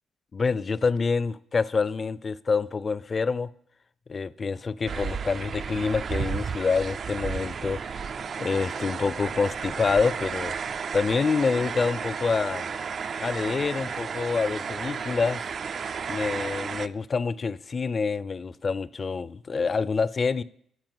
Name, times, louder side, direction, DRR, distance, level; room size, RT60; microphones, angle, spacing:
voice 1, 0.3-3.5 4.1-7.8 8.4-10.6 10.9-12.7 13.2-15.4 16.1-20.4, left 4 dB, 35° left, 0.4 m, -27 dB
sound 1, 4.9-16.9, right 6 dB, 50° right, 0.4 m, -33 dB
12.5 x 4.6 x 7.7 m
cardioid pair, 90°, 0 cm